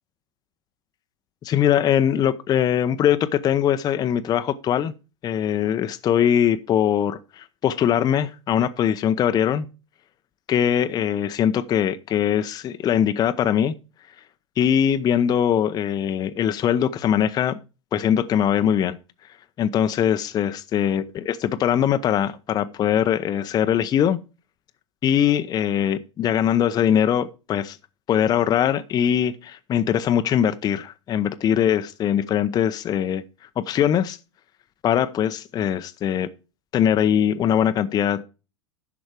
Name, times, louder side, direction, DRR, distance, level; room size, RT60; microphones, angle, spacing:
voice 1, 1.4-4.9 5.2-9.7 10.5-13.7 14.6-17.6 17.9-19.0 19.6-24.2 25.0-27.8 28.1-33.2 33.6-34.2 34.8-36.3 36.7-38.2, left 9 dB, 25° left, 0.7 m, -21 dB
10.5 x 6.2 x 4.7 m
figure-of-eight pair, 95°, 16 cm